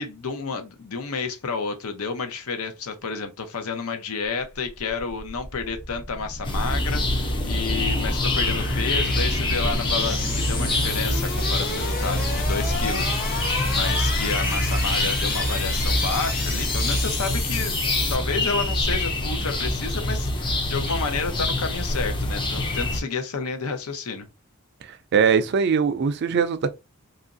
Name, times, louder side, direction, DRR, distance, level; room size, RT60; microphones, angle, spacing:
voice 1, 0.0-17.7 18.1-24.3, left 5 dB, 80° left, 0.6 m, -30 dB
sound 1, 4.5-18.1, left 3 dB, 40° left, 0.9 m, -31 dB
sound 2, 6.4-23.0, left 1 dB, 20° left, 0.4 m, -25 dB
voice 2, 25.1-26.7, right 6 dB, 50° right, 0.3 m, -21 dB
2.9 x 2.5 x 2.5 m
head